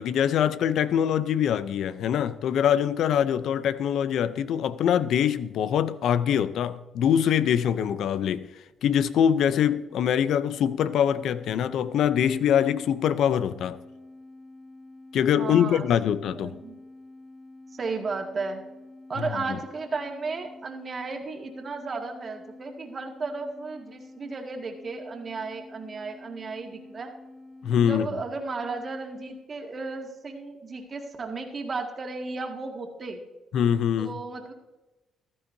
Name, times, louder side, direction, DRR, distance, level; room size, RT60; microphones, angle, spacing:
voice 1, 0.0-8.5 8.8-13.8 15.1-16.5 19.2-19.6 27.6-28.1 33.5-34.2, left 9 dB, 75° left, 0.6 m, -24 dB
sound 1, 9.9-29.5, left 2 dB, 5° right, 2.0 m, -48 dB
voice 2, 15.4-15.9 16.3-16.8 17.7-18.6 19.1-27.1 27.8-33.2 34.0-34.5, right 3 dB, 40° right, 2.0 m, -34 dB
15.0 x 13.0 x 2.7 m
cardioid pair, 90°, 0 cm